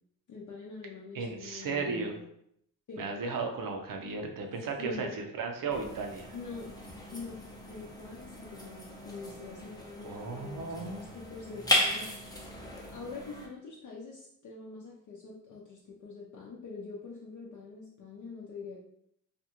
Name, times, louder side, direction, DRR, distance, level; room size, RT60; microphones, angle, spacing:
voice 1, 0.3-2.2 2.9-3.0 4.8-5.2 6.3-6.7 7.1-7.4 7.7-12.1 12.9-18.8, left 4 dB, 55° left, -4 dB, 0.6 m, -44 dB
voice 2, 1.1-2.2 3.0-6.3 10.0-11.1, right 4 dB, 65° right, 3 dB, 0.6 m, -35 dB
sound 1, 5.7-13.5, left 1 dB, 10° left, 0.6 m, -36 dB
2.5 x 2.3 x 2.9 m, 0.72 s
cardioid pair, 80°, 35 cm